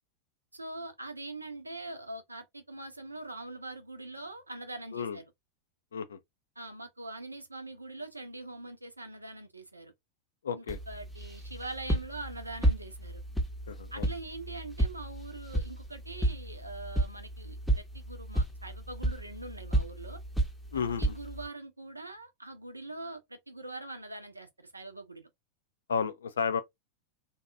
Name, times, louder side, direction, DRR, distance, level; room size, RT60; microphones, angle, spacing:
voice 1, 0.5-5.2 6.6-9.9 10.5-13.2 13.9-20.2 21.0-25.3, right 2 dB, 85° right, 0.6 m, -43 dB
voice 2, 10.4-10.8 13.7-14.1 20.7-21.1 25.9-26.6, left 6 dB, 70° left, 0.4 m, -32 dB
sound 1, 10.7-21.5, right 1 dB, ahead, 0.7 m, -32 dB
2.7 x 2.3 x 2.4 m
figure-of-eight pair, 90°, 0 cm